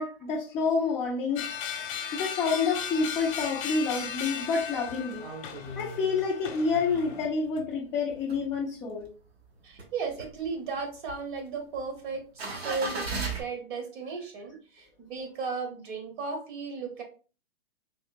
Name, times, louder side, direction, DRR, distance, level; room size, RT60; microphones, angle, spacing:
voice 1, 0.0-1.5 2.1-5.3 5.8-9.1, left 4 dB, 10° left, 0.3 m, -28 dB
sound 1, 1.4-7.2, left 8 dB, 35° left, 0.7 m, -37 dB
sound 2, 2.9-3.6 4.0-4.1 4.3-7.8 8.1-9.1 9.5-13.4, right 3 dB, 90° right, 1.2 m, -38 dB
voice 2, 9.6-17.0, right 4 dB, 55° right, 1.0 m, -35 dB
3.6 x 2.8 x 2.5 m
hypercardioid pair, 135°, 30 cm